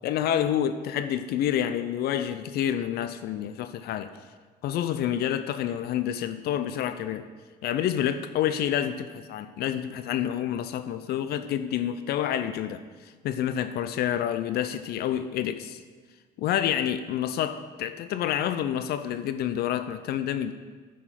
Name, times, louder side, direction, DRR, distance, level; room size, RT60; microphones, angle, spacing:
voice 1, 0.0-4.1 4.6-7.3 7.6-15.8 16.4-20.5, left 10 dB, 70° left, 11 dB, 0.4 m, -28 dB
9.9 x 5.0 x 5.7 m, 1.5 s
cardioid pair, 110°, 17 cm